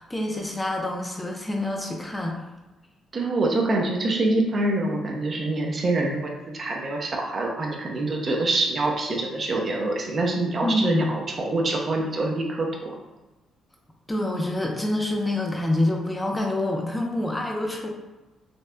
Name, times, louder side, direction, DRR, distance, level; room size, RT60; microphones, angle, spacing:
voice 1, 0.0-2.4 10.6-11.1 14.1-17.9, left 1 dB, 15° left, 0 dB, 0.7 m, -26 dB
voice 2, 3.1-13.0, right 2 dB, 40° right, 0 dB, 0.9 m, -25 dB
6.5 x 2.4 x 2.3 m, 1.1 s
cardioid pair, 90°, 0 cm